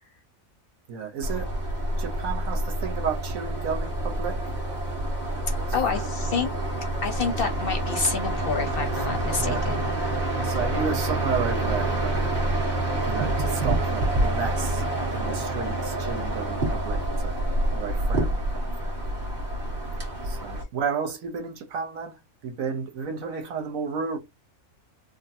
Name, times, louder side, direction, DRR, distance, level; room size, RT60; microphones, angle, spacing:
voice 1, 0.9-1.6 2.0-4.4 5.6-6.4 7.2-7.4 8.8-9.8 10.4-12.3 13.1-14.9 15.1-17.4 17.7-18.9 20.2-24.2, right 6 dB, 85° right, 1.3 m, -33 dB
sound 1, 1.2-20.6, right 1 dB, 35° right, 1.4 m, -27 dB
voice 2, 5.7-6.5 7.0-9.9, left 5 dB, 55° left, 0.8 m, -28 dB
3.8 x 2.1 x 2.7 m
omnidirectional pair, 1.4 m